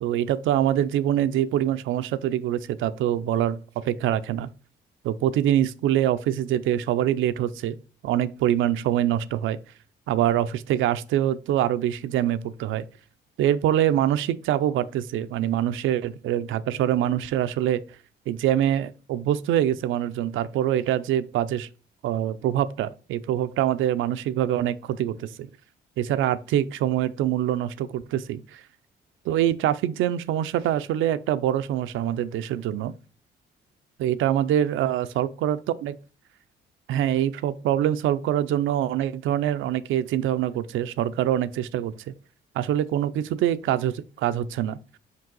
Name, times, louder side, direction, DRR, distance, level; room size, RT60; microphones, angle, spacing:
voice 1, 0.0-4.5 5.0-7.8 8.0-9.6 10.1-12.8 13.4-17.8 18.3-21.7 22.0-25.5 26.0-28.6 29.3-32.9 34.0-36.0 36.9-42.1 42.5-44.8, right 11 dB, 80° right, 0.5 m, -24 dB
5.3 x 5.2 x 3.9 m
cardioid pair, 90°, 20 cm